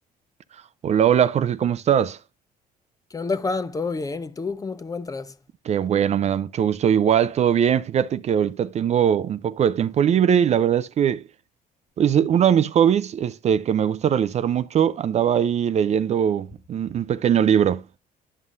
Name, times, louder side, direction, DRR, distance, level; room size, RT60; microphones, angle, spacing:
voice 1, 0.8-2.2 5.7-11.2 12.0-17.8, right 9 dB, 40° right, 0.4 m, -21 dB
voice 2, 3.1-5.4, left 4 dB, 20° left, 0.5 m, -28 dB
11.0 x 5.5 x 2.4 m
cardioid pair, 110°, 17 cm